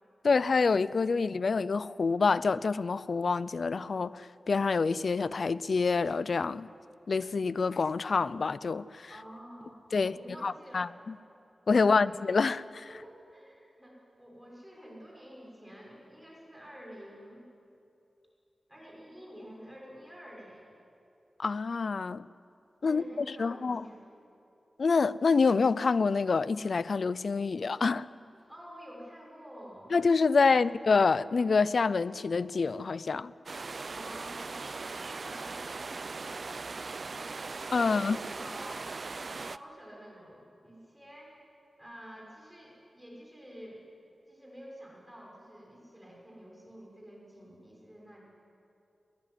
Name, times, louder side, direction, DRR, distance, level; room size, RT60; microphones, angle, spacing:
voice 1, 0.2-6.7 7.1-9.1 9.9-11.1 11.7-12.9 21.4-22.3 22.8-23.9 24.8-28.1 29.9-33.3 37.7-38.2, left 4 dB, 60° left, 0.5 m, -27 dB
voice 2, 9.1-9.8 10.0-10.9 11.7-12.2 12.9-17.5 18.7-20.7 22.8-24.0 28.5-30.0 30.3-30.7 33.8-41.4 41.8-43.8 44.3-48.2, equal, 5° right, 6.2 m, -49 dB
sound 1, 33.5-39.6, right 4 dB, 50° right, 0.5 m, -39 dB
21.5 x 19.0 x 10.0 m
wide cardioid pair, 100°, 0 cm